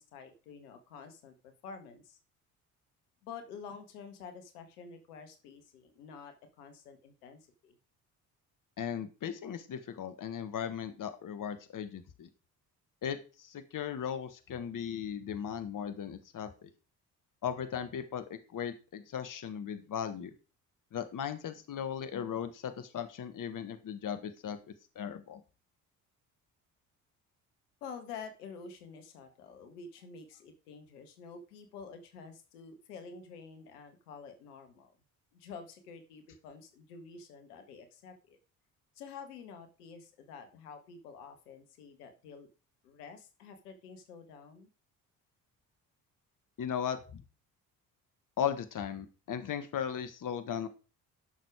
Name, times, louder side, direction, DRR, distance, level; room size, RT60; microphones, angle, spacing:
voice 1, 0.0-2.2 3.2-7.8 27.8-34.9 35.3-38.4 39.0-42.5 42.8-44.7, left 5 dB, 75° left, 7 dB, 1.7 m, -49 dB
voice 2, 8.8-12.3 13.0-16.7 17.4-20.3 20.9-24.6 24.9-25.4 46.6-47.2 48.4-50.7, left 8 dB, 45° left, 10 dB, 1.4 m, -37 dB
11.5 x 6.6 x 4.9 m, 0.34 s
figure-of-eight pair, 45°, 46 cm